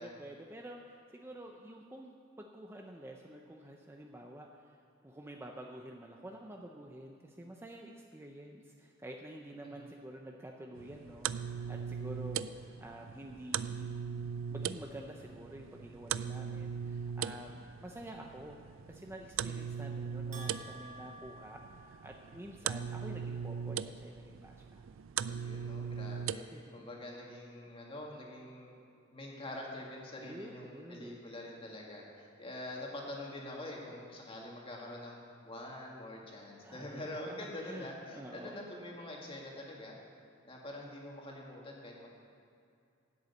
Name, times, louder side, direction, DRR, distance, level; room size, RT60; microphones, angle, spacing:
voice 1, 0.0-13.9 14.5-24.8 26.5-26.9 30.2-31.2 36.6-37.9 38.1-38.7, right 1 dB, 10° right, 1 dB, 0.6 m, -49 dB
sound 1, 10.8-26.4, right 7 dB, 70° right, 0.4 m, -39 dB
Bell, 20.3-22.5, right 2 dB, 40° right, 1.6 m, -51 dB
voice 2, 25.3-28.7 29.1-35.2 35.4-40.0 40.4-42.1, left 1 dB, 25° left, -2 dB, 2.1 m, -45 dB
11.0 x 8.1 x 8.3 m, 2.5 s
head